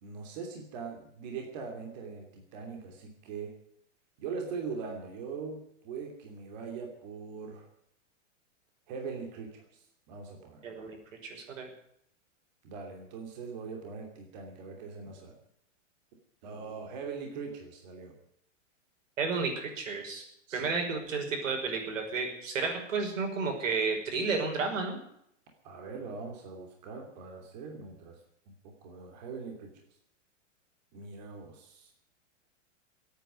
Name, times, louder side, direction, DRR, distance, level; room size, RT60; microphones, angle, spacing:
voice 1, 0.0-3.5 4.2-7.7 8.9-9.8 10.1-10.7 12.6-15.3 16.4-18.1 20.5-20.7 25.6-28.2 28.5-29.7 30.9-31.9, right 5 dB, 35° right, 2 dB, 3.0 m, -41 dB
voice 2, 10.6-11.0 11.2-11.7 19.2-20.2 20.5-25.0, right 4 dB, 90° right, 3 dB, 5.7 m, -32 dB
16.0 x 9.3 x 9.7 m, 0.73 s
supercardioid pair, 175°, 38 cm